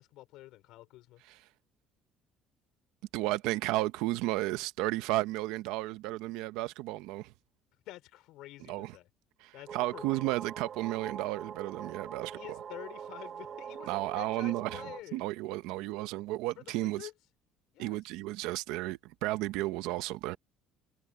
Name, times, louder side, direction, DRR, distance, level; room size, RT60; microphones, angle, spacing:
voice 1, 0.0-1.2 7.9-9.1 9.5-10.5 12.3-15.2 16.6-17.1 17.7-18.0, left 16 dB, 65° left, 4.8 m, -48 dB
voice 2, 3.1-7.3 8.7-8.9 9.4-12.6 13.9-14.8 15.1-17.1 17.8-20.4, right 18 dB, 85° right, 0.8 m, -33 dB
sound 1, 9.7-15.0, right 7 dB, 30° right, 1.0 m, -43 dB
cardioid pair, 175°, 0 cm